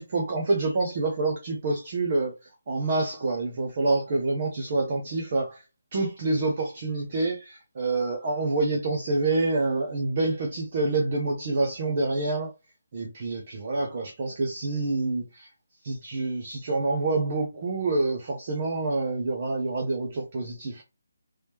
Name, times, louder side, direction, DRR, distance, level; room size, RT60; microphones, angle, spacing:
voice 1, 0.0-2.3 2.7-5.6 5.9-12.5 12.9-15.5 15.8-20.8, right 3 dB, 25° right, 0.5 m, -27 dB
3.1 x 2.9 x 3.3 m
hypercardioid pair, 180°, 0 cm